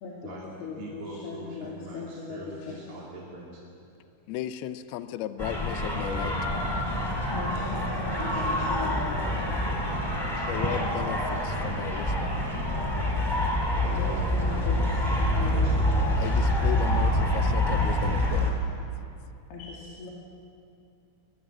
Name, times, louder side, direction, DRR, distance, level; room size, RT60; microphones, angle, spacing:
voice 1, 0.0-2.8 7.3-9.1 13.9-14.8 15.1-16.1 19.5-20.1, left 4 dB, 60° left, -4 dB, 4.2 m, -39 dB
voice 2, 0.8-3.6 8.2-10.5 13.8-14.7 15.1-16.0, right 2 dB, 35° right, -5 dB, 3.1 m, -42 dB
voice 3, 4.3-6.4 10.5-12.4 16.2-18.6, left 12 dB, 90° left, 10 dB, 2.2 m, -35 dB
sound 1, 5.4-18.5, left 1 dB, 5° left, 2.5 m, -26 dB
22.0 x 21.0 x 8.9 m, 2.6 s
omnidirectional pair, 5.6 m